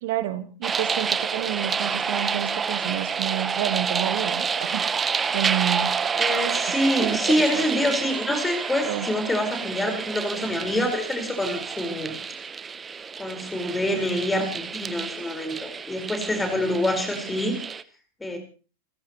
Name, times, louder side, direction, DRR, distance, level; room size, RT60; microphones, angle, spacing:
voice 1, 0.0-4.8 5.3-5.9 6.7-7.2 7.5-7.6 8.8-9.1, right 12 dB, 50° right, 13 dB, 1.2 m, -29 dB
sound 1, 0.6-17.8, right 6 dB, 20° right, 0.9 m, -29 dB
voice 2, 6.2-12.1 13.2-17.6 18.2-18.4, left 1 dB, 10° left, 5 dB, 4.9 m, -26 dB
29.5 x 15.5 x 3.1 m, 0.36 s
figure-of-eight pair, 90°, 0 cm